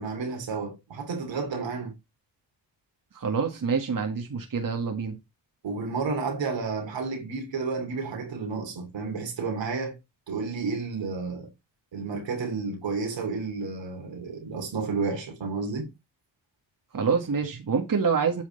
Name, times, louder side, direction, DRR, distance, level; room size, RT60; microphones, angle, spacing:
voice 1, 0.0-1.9 5.6-9.9 10.3-11.5 11.9-15.9, right 4 dB, 75° right, 2.7 m, -31 dB
voice 2, 3.1-5.2 16.9-18.4, right 5 dB, 45° right, 1.8 m, -26 dB
8.9 x 5.0 x 3.9 m
supercardioid pair, 45°, 45 cm